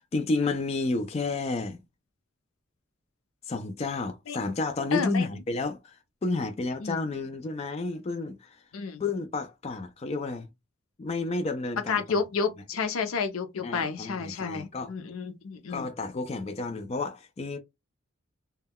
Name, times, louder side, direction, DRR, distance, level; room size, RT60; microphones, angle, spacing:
voice 1, 0.0-1.8 3.5-8.6 9.0-10.5 11.0-12.0 13.6-14.9 15.7-17.6, left 3 dB, 30° left, 0.3 m, -31 dB
voice 2, 4.9-5.3 6.8-7.0 8.7-9.0 11.9-15.9, left 5 dB, 80° left, 0.5 m, -30 dB
2.2 x 2.2 x 3.4 m
head